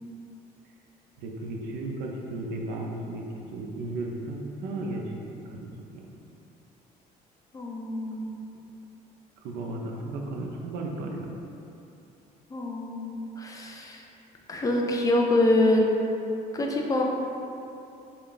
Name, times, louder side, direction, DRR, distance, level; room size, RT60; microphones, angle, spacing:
voice 1, 1.2-6.1 9.4-11.3, right 2 dB, 75° right, 1 dB, 0.5 m, -35 dB
voice 2, 7.5-8.4 12.5-14.0 14.5-15.8 16.5-17.0, left 1 dB, 20° left, 0 dB, 0.5 m, -25 dB
3.8 x 2.3 x 3.8 m, 2.8 s
cardioid pair, 110°, 17 cm